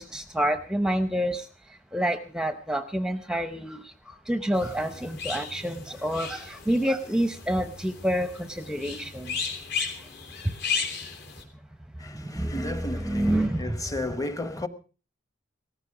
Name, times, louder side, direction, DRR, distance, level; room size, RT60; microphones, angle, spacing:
voice 1, 0.0-1.5 1.9-3.9 4.3-9.4 12.2-13.8, equal, 5° right, 0.7 m, -28 dB
sound 1, 4.5-11.4, left 5 dB, 60° left, 3.3 m, -35 dB
voice 2, 12.0-14.7, left 1 dB, 15° left, 1.0 m, -33 dB
17.5 x 14.5 x 4.8 m
head